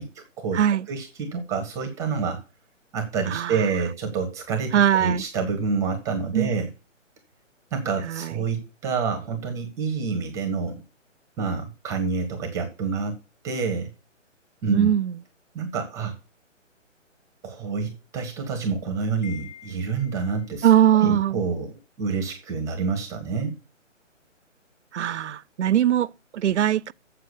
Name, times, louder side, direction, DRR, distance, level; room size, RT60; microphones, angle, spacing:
voice 1, 0.0-0.6 0.9-2.4 2.9-6.7 7.7-10.8 11.4-13.2 13.4-13.9 14.6-14.9 15.5-16.1 17.4-20.7 21.0-23.6, right 5 dB, 10° right, 0.9 m, -28 dB
voice 2, 0.5-0.9 3.3-3.6 4.7-5.2 6.3-6.5 8.0-8.4 14.7-15.2 20.6-21.4 24.9-26.9, right 10 dB, 65° right, 0.5 m, -21 dB
Wind chime, 19.2-20.6, left 10 dB, 35° left, 1.2 m, -46 dB
7.5 x 6.7 x 8.0 m
figure-of-eight pair, 145°, 38 cm